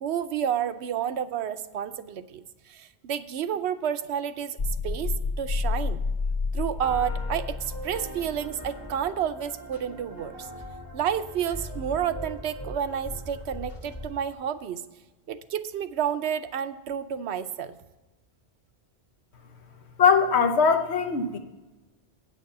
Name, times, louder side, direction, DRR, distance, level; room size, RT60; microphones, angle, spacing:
voice 1, 0.0-2.4 2.7-4.6 4.8-6.0 6.5-10.5 10.9-14.8 15.3-17.7, right 9 dB, 80° right, 11 dB, 0.9 m, -30 dB
sound 1, 4.6-8.6, left 4 dB, 50° left, 0.7 m, -30 dB
sound 2, 6.8-14.1, equal, 20° left, 1.4 m, -40 dB
voice 2, 20.0-21.4, left 5 dB, 85° left, 7 dB, 1.2 m, -21 dB
8.8 x 6.5 x 6.6 m, 1.1 s
omnidirectional pair, 1.1 m